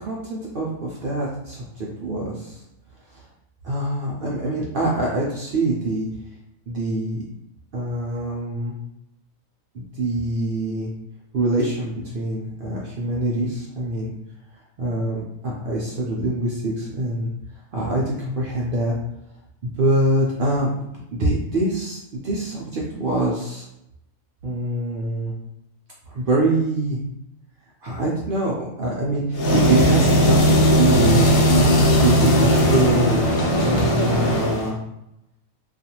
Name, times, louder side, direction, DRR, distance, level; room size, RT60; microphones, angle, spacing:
voice 1, 0.0-2.6 3.6-6.1 6.7-7.2 7.7-8.7 9.7-10.9 11.3-14.1 14.8-17.3 17.7-19.0 19.8-23.6 24.4-25.3 26.1-27.0 27.8-31.4 32.0-33.2 33.6-34.8, right 2 dB, 75° right, -4 dB, 0.5 m, -24 dB
sound 1, 29.3-34.7, equal, 80° left, 1.0 m, -17 dB
2.5 x 2.3 x 2.8 m, 0.81 s
omnidirectional pair, 1.5 m